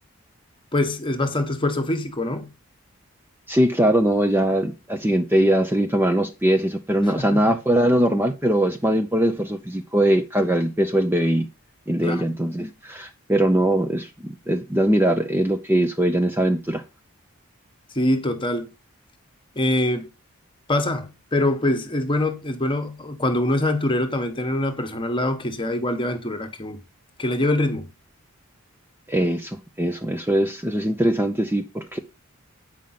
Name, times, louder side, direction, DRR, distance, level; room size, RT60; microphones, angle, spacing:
voice 1, 0.7-2.5 7.2-7.6 12.0-12.2 17.9-18.7 19.6-20.1 20.7-26.8 27.2-27.9, left 1 dB, 25° left, 1.2 m, -24 dB
voice 2, 3.5-11.5 11.9-16.8 29.1-32.0, right 1 dB, 10° right, 0.6 m, -21 dB
9.1 x 5.1 x 5.7 m
head